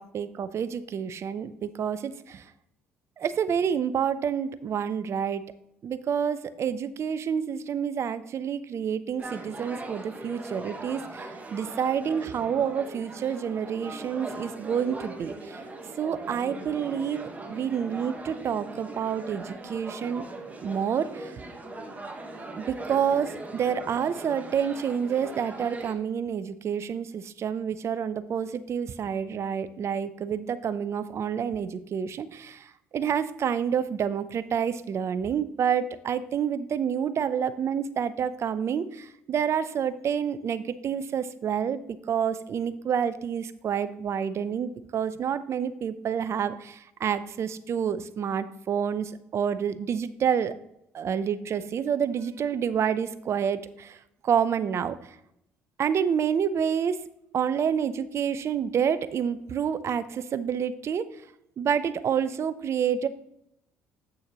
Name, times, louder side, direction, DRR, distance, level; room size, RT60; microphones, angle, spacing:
voice 1, 0.0-2.4 3.2-5.4 5.8-15.6 16.0-20.2 20.6-21.3 22.6-32.6 32.9-41.8 42.1-50.5 50.9-54.0 54.2-55.0 55.8-57.0 57.3-61.0 61.6-63.1, right 7 dB, 50° right, 14 dB, 0.6 m, -28 dB
sound 1, 9.2-25.9, right 2 dB, 25° right, 1.3 m, -40 dB
8.3 x 6.4 x 2.9 m, 0.79 s
hypercardioid pair, 60°, 6 cm